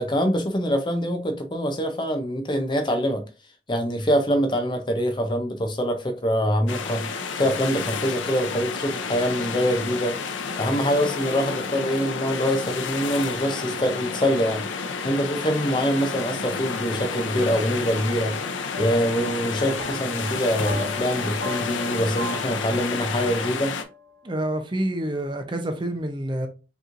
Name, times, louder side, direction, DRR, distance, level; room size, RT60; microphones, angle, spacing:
voice 1, 0.0-3.2 3.7-7.1 7.4-10.2 10.6-14.7 15.0-18.4 18.8-23.7, equal, 25° left, 0.5 m, -24 dB
sound 1, 6.7-23.8, left 5 dB, 90° left, 0.6 m, -30 dB
sound 2, 18.4-24.2, left 1 dB, 75° right, 1.8 m, -39 dB
voice 2, 24.2-26.5, right 1 dB, 25° right, 0.6 m, -27 dB
5.3 x 3.0 x 2.5 m
head